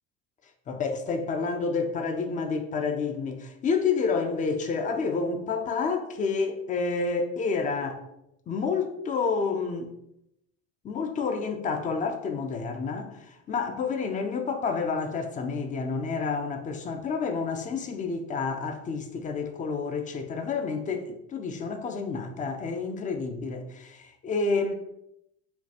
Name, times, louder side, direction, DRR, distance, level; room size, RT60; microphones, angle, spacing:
voice 1, 0.7-8.0 8.5-9.9 10.8-24.7, left 4 dB, 20° left, 0.4 m, -29 dB
5.2 x 2.3 x 2.8 m
hypercardioid pair, 70°, 44 cm